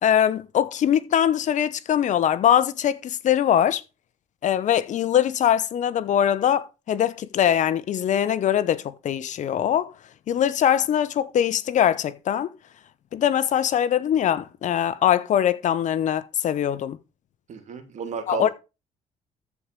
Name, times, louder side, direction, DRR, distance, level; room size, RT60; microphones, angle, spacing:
voice 1, 0.0-3.8 4.4-9.9 10.3-12.5 13.1-17.0 18.3-18.5, left 10 dB, 60° left, 1.1 m, -22 dB
voice 2, 17.5-18.5, right 5 dB, 60° right, 2.8 m, -32 dB
14.0 x 4.8 x 5.2 m
cardioid pair, 85°, 14 cm